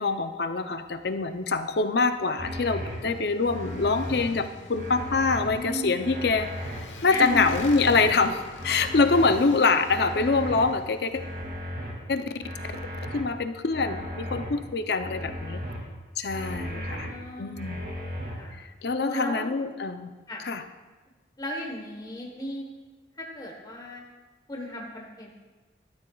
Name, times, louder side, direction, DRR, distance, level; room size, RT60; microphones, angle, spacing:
voice 1, 0.0-6.5 7.0-11.2 12.1-12.2 13.0-15.6 16.2-17.1 17.4-17.8 18.5-20.1 20.4-20.6, left 4 dB, 60° left, 9 dB, 0.5 m, -25 dB
Motorcycle, 0.8-11.5, left 2 dB, 90° left, 1.1 m, -47 dB
sound 1, 2.4-3.0 3.4-4.2 4.7-5.5 6.0-6.8 7.3-8.1 8.6-9.3 9.8-10.6 11.1-11.9 12.4-13.2 13.7-14.5 15.0-15.8 16.3-17.1 17.5-18.3, equal, 55° right, 2.2 m, -35 dB
voice 2, 3.0-4.0 5.4-6.0 7.1-7.4 16.7-17.9 18.2-18.6 19.1-19.5 20.3-20.5 21.4-22.7 23.2-24.0 24.5-25.3, equal, 20° left, -1 dB, 1.1 m, -36 dB
12.5 x 12.0 x 2.3 m, 1.3 s
head